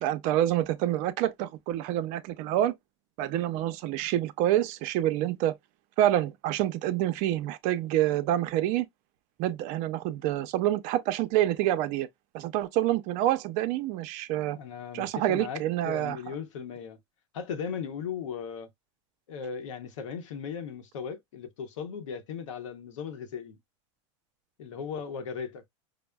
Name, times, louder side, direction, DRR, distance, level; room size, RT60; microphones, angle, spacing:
voice 1, 0.0-2.7 3.2-5.6 6.0-8.9 9.4-12.1 12.3-14.6 14.9-16.2, right 13 dB, 50° right, 0.5 m, -27 dB
voice 2, 14.5-17.0 17.3-18.7 19.3-23.6 24.6-25.6, left 7 dB, 85° left, 0.9 m, -37 dB
5.1 x 2.0 x 2.2 m
supercardioid pair, 120°, 16 cm